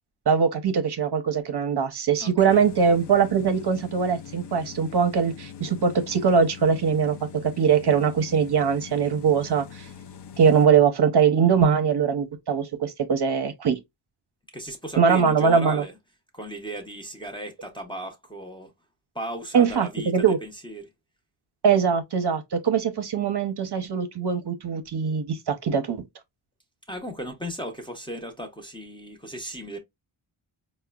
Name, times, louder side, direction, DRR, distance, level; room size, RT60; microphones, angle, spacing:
voice 1, 0.3-9.9 10.4-13.8 15.0-15.8 19.5-20.4 21.6-26.0, right 6 dB, 55° right, 0.6 m, -22 dB
voice 2, 2.2-2.7 14.5-16.0 16.3-18.7 19.1-20.9 26.9-29.8, right 1 dB, 10° left, 0.6 m, -36 dB
sound 1, 2.5-10.7, left 8 dB, 60° left, 0.5 m, -43 dB
4.7 x 2.1 x 2.2 m
wide cardioid pair, 145°, 49 cm